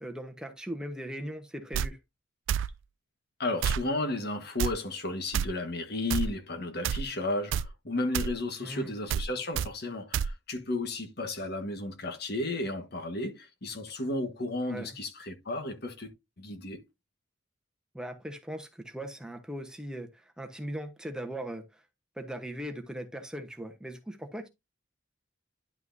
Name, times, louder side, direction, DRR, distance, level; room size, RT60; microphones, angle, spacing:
voice 1, 0.0-2.0 8.6-8.9 14.7-14.9 17.9-21.6 22.2-24.5, right 1 dB, 5° right, 1.1 m, -39 dB
sound 1, 1.7-1.9 2.5-2.7 3.6-3.8 4.6-4.7 5.3-5.5 6.1-6.3 6.8-7.0 7.5-7.7 8.1-8.3 9.1-9.3 9.5-9.7 10.1-10.3, right 8 dB, 85° right, 0.3 m, -28 dB
voice 2, 3.4-16.1 16.4-16.8, left 2 dB, 55° left, 1.5 m, -33 dB
11.0 x 5.8 x 2.7 m
head